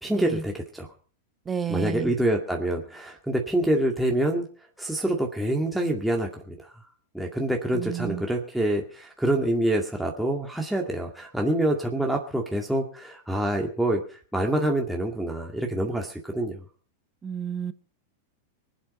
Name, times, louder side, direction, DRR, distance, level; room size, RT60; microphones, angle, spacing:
voice 1, 0.0-0.9 1.7-4.5 4.8-6.7 7.1-16.6, right 1 dB, ahead, 2.1 m, -26 dB
voice 2, 1.5-2.1 7.7-8.2 17.2-17.7, right 7 dB, 20° right, 1.2 m, -31 dB
24.5 x 8.2 x 5.4 m
hypercardioid pair, 100°, 0 cm